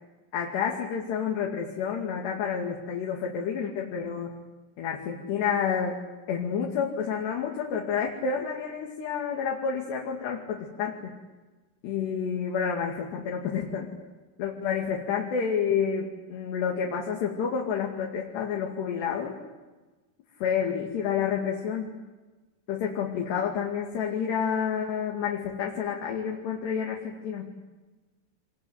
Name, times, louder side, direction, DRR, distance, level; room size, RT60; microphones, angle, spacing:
voice 1, 0.3-4.3 4.8-6.0 6.3-11.2 11.8-13.9 14.4-19.4 20.4-21.9 22.7-27.6, left 7 dB, 70° left, 0 dB, 4.5 m, -29 dB
25.5 x 21.5 x 9.6 m, 1.2 s
omnidirectional pair, 5.1 m